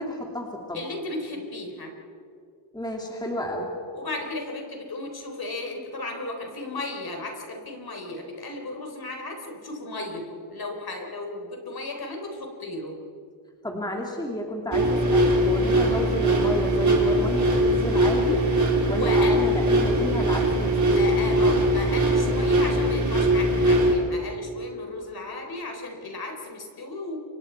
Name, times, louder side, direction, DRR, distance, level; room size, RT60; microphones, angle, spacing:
voice 1, 0.0-0.8 2.7-3.7 13.6-18.4 18.9-21.2, left 1 dB, 10° left, 0 dB, 2.5 m, -31 dB
voice 2, 0.7-1.9 3.9-13.0 15.7-15.8 18.9-19.4 20.9-27.2, left 2 dB, 50° left, 3 dB, 4.0 m, -35 dB
sound 1, 14.7-23.9, right 1 dB, 35° right, 3.8 m, -21 dB
28.5 x 25.0 x 4.6 m, 2.3 s
wide cardioid pair, 135°, 48 cm